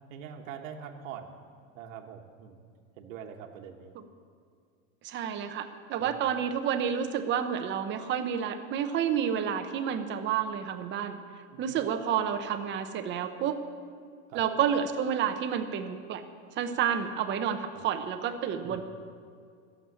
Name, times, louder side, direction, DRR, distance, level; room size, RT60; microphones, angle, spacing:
voice 1, 0.1-1.4 1.7-2.6 3.0-3.9 6.0-6.1 11.5-11.6 14.3-14.4 17.7-17.9 18.6-18.8, right 8 dB, 70° right, 3 dB, 1.4 m, -43 dB
voice 2, 5.0-11.2 11.6-13.6 14.3-16.2 16.5-18.8, right 8 dB, 25° right, 8 dB, 0.8 m, -30 dB
12.5 x 7.4 x 9.8 m, 2.2 s
supercardioid pair, 145°, 41 cm